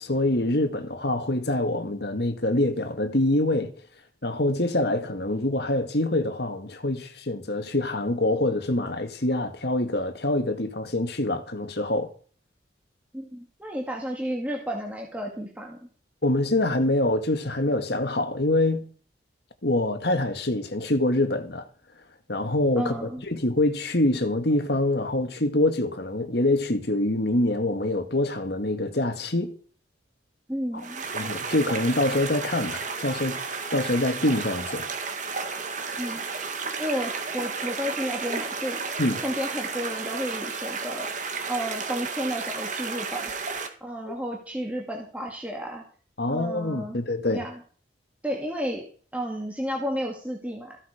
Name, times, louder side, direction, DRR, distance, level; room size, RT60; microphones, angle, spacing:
voice 1, 0.0-3.7 4.2-12.1 16.2-18.8 19.6-21.7 22.3-23.0 23.3-29.5 31.1-33.4 33.7-34.9 39.0-39.2 46.2-47.4, left 1 dB, 55° left, 2.0 m, -25 dB
voice 2, 13.1-15.9 22.8-23.2 30.5-31.0 36.0-36.2 36.8-38.8 39.2-43.3 43.8-45.8 46.3-47.0 47.3-47.6 48.2-48.9 49.1-50.8, equal, 10° right, 2.2 m, -32 dB
sound 1, 30.8-43.7, right 4 dB, 40° right, 1.9 m, -32 dB
15.5 x 11.5 x 5.1 m
head